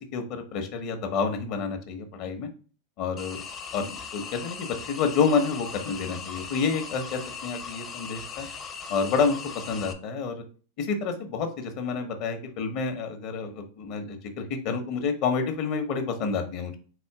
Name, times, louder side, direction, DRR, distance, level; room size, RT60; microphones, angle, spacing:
voice 1, 0.1-2.5 3.0-3.4 3.7-8.5 8.9-10.4 10.8-16.8, left 5 dB, 50° left, 6 dB, 1.0 m, -29 dB
sound 1, 3.2-9.9, left 6 dB, 25° left, 0.6 m, -39 dB
4.1 x 2.6 x 4.7 m, 0.38 s
supercardioid pair, 130°, 0 cm